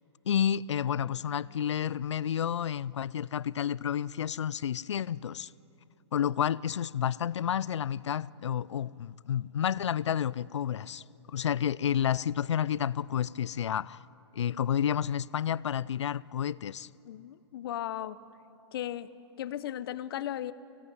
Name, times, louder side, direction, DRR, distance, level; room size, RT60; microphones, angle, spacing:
voice 1, 0.3-5.5 6.1-11.0 11.3-14.0 14.3-16.9, left 9 dB, 85° left, 0.5 m, -30 dB
voice 2, 17.0-18.2 18.7-19.1 19.4-20.5, left 12 dB, 55° left, 0.9 m, -36 dB
23.0 x 17.5 x 9.4 m
hypercardioid pair, 140°, 14 cm